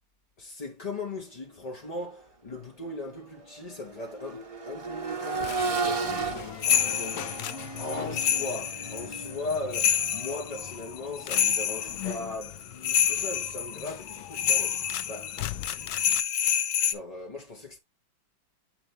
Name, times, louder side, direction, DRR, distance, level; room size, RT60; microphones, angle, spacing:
voice 1, 0.4-6.4 6.9-7.3 7.8-15.3 16.8-17.8, left 2 dB, 45° left, 0.4 m, -38 dB
Accelerating revving vroom, 1.9-2.1 2.5-12.4 14.1-14.2, right 4 dB, 30° right, 0.7 m, -36 dB
sound 1, 5.3-16.2, left 14 dB, 85° left, 1.4 m, -41 dB
sound 2, 6.6-16.9, left 9 dB, 65° left, 1.3 m, -28 dB
8.8 x 3.2 x 3.8 m
omnidirectional pair, 2.1 m